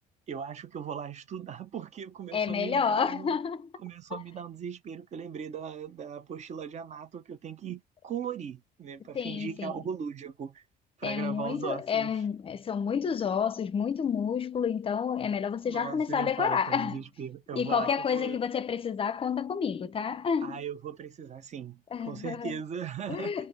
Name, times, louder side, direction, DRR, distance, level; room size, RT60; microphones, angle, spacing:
voice 1, 0.3-3.3 3.8-10.6 11.0-12.1 15.7-18.4 20.4-23.4, right 7 dB, 45° right, 0.6 m, -38 dB
voice 2, 2.3-3.7 4.1-4.2 9.1-9.8 11.0-17.0 17.6-20.6 21.9-22.6 23.1-23.5, left 6 dB, 35° left, 0.5 m, -30 dB
4.4 x 2.7 x 3.2 m
cardioid pair, 110°, 17 cm